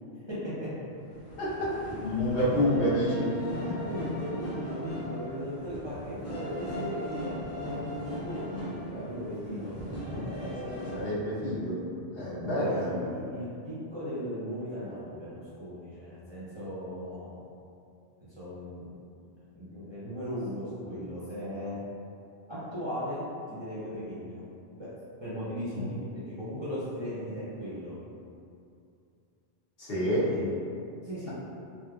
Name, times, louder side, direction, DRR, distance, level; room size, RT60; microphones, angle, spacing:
voice 1, 0.3-0.9 3.6-9.7 10.0-11.0 12.3-17.3 18.4-18.9 19.5-21.8 22.5-23.2 23.5-24.4 24.8-24.9 25.2-28.0 30.0-30.6 31.0-31.3, equal, 30° right, -11 dB, 0.6 m, -37 dB
sound 1, 1.1-11.1, equal, 80° left, 1.3 m, -38 dB
voice 2, 1.4-1.7 2.0-3.3 3.6-3.7 10.9-11.8 12.1-13.0 25.7-25.8 29.8-30.3, equal, 60° left, -10 dB, 1.1 m, -28 dB
3.4 x 2.7 x 2.3 m, 2.5 s
omnidirectional pair, 1.1 m